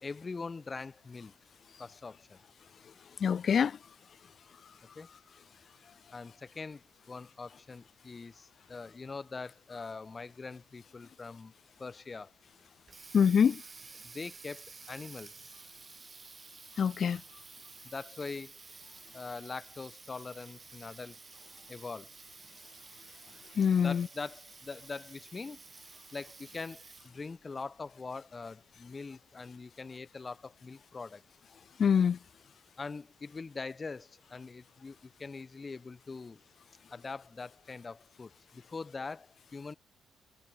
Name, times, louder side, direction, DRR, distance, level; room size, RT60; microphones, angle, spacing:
voice 1, 0.0-1.3 1.8-2.4 4.9-5.1 6.1-11.5 11.8-12.3 14.0-15.3 17.8-18.5 19.1-21.2 21.7-22.1 23.8-31.2 32.8-36.4 36.9-39.7, left 4 dB, 30° left, 1.5 m, -43 dB
voice 2, 3.2-3.8 13.1-13.6 16.8-17.2 23.6-24.1 31.8-32.2, left 7 dB, 50° left, 0.4 m, -25 dB
Water tap faucet, 12.6-27.3, right 4 dB, 35° right, 4.9 m, -52 dB
cardioid pair, 90°, 0 cm